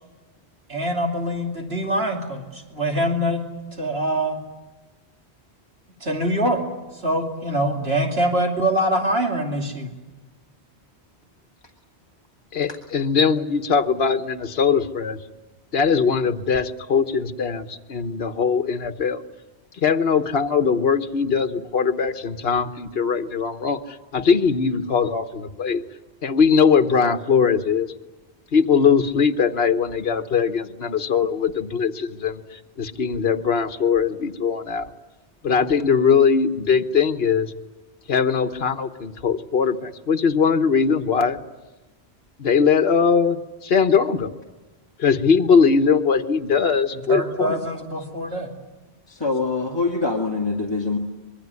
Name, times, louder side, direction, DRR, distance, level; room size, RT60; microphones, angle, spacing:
voice 1, 0.7-3.4 3.7-4.4 6.0-6.6 6.9-9.9 47.1-48.5, right 1 dB, 70° right, 2 dB, 3.1 m, -24 dB
voice 2, 12.5-15.2 15.7-19.2 19.8-25.8 26.2-27.9 28.5-32.4 32.8-34.9 35.4-37.5 38.1-41.4 42.4-44.3 45.0-47.6, left 6 dB, 70° left, 8 dB, 1.4 m, -20 dB
voice 3, 49.1-51.0, left 3 dB, 25° left, -1 dB, 2.4 m, -24 dB
25.5 x 22.5 x 9.6 m, 1.1 s
omnidirectional pair, 1.1 m